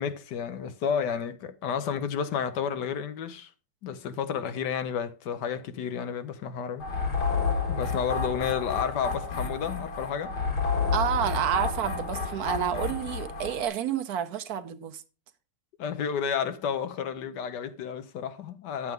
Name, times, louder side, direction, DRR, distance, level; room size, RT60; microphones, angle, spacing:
voice 1, 0.0-3.5 3.8-6.9 7.7-10.4 15.8-18.9, left 7 dB, 90° left, 1.5 m, -31 dB
sound 1, 6.8-13.7, left 4 dB, 75° left, 2.5 m, -30 dB
voice 2, 10.9-15.0, right 9 dB, 70° right, 1.2 m, -29 dB
9.3 x 7.9 x 3.6 m
omnidirectional pair, 1.8 m